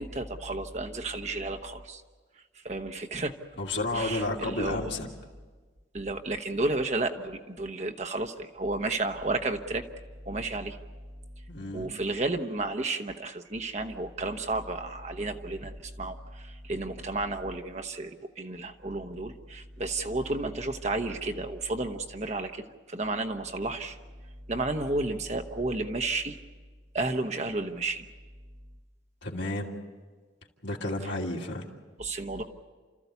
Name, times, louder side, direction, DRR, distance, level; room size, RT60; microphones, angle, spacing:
voice 1, 0.0-2.0 2.6-3.4 3.9-4.9 5.9-9.8 10.2-10.8 11.7-22.6 22.9-24.0 24.5-26.4 26.9-28.0 31.0-31.1 32.0-32.4, right 2 dB, 35° right, 5 dB, 1.0 m, -32 dB
voice 2, 3.6-5.1 11.5-11.9 29.2-29.7 30.6-31.7, left 2 dB, 70° left, -1 dB, 2.6 m, -31 dB
30.0 x 14.0 x 8.2 m, 1.4 s
head